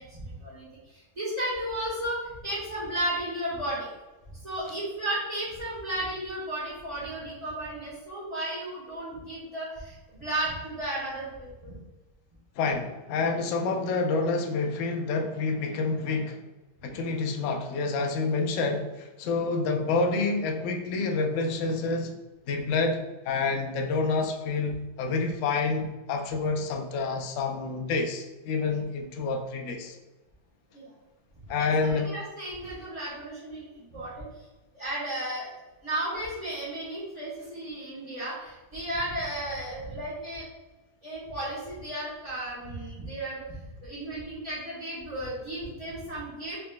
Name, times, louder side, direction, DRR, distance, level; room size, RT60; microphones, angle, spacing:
voice 1, 0.0-3.9 4.4-11.7 30.7-30.9 31.6-33.7 33.9-34.3 34.7-35.5 35.8-40.4 41.0-43.5 43.8-46.6, right 1 dB, 25° right, -11 dB, 1.2 m, -34 dB
voice 2, 12.6-16.4 16.8-22.1 22.5-30.0 31.5-32.1, left 3 dB, 85° left, 4 dB, 0.6 m, -28 dB
4.2 x 4.0 x 2.2 m, 1.1 s
omnidirectional pair, 1.9 m